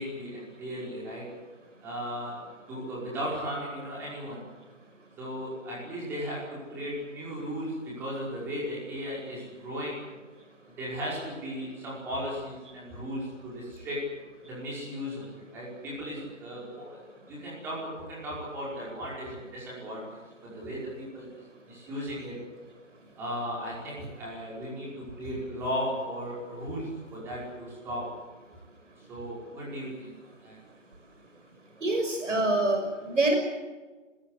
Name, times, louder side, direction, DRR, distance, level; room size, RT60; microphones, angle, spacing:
voice 1, 0.0-1.4 1.8-4.4 5.2-10.1 10.8-14.2 14.5-20.2 20.4-22.4 23.2-28.2 29.0-30.6, equal, 5° right, -6 dB, 5.4 m, -36 dB
voice 2, 31.8-33.4, right 2 dB, 70° right, 4 dB, 6.1 m, -25 dB
25.0 x 21.0 x 8.2 m, 1.3 s
figure-of-eight pair, 170°, 38 cm